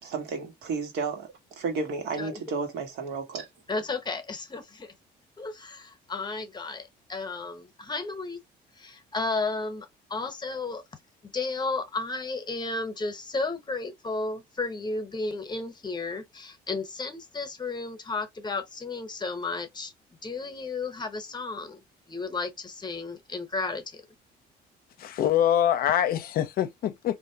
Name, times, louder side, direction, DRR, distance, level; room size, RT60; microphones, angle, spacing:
voice 1, 0.0-3.5, right 4 dB, 80° right, 1.3 m, -32 dB
voice 2, 3.7-4.9 5.4-8.4 8.8-10.8 11.2-19.9 20.2-24.0, left 3 dB, 25° left, 0.9 m, -33 dB
voice 3, 25.0-27.2, left 10 dB, 60° left, 0.6 m, -24 dB
3.2 x 2.6 x 2.7 m
cardioid pair, 110°, 17 cm